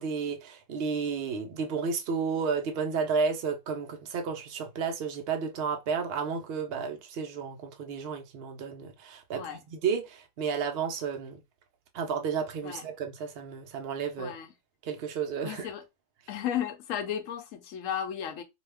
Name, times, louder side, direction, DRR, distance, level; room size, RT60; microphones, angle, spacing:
voice 1, 0.0-11.4 11.9-14.3 14.8-15.7, right 5 dB, 85° right, 0.5 m, -32 dB
voice 2, 15.4-15.8 16.3-18.4, left 9 dB, 65° left, 0.8 m, -34 dB
2.7 x 2.2 x 3.3 m
omnidirectional pair, 1.7 m